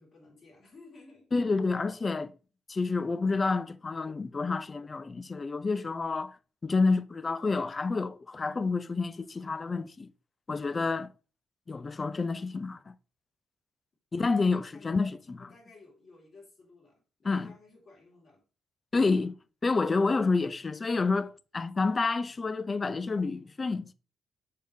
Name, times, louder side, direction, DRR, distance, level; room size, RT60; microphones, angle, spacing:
voice 1, 0.0-1.3 14.6-14.9 15.4-18.4, left 3 dB, 50° left, 3.8 m, -55 dB
voice 2, 1.3-2.3 2.7-6.4 6.6-10.1 10.5-11.1 11.7-12.9 14.1-15.5 17.2-17.5 18.9-19.4 19.6-23.9, left 4 dB, 30° left, 0.4 m, -29 dB
6.6 x 5.0 x 3.3 m
cardioid pair, 90°, 0 cm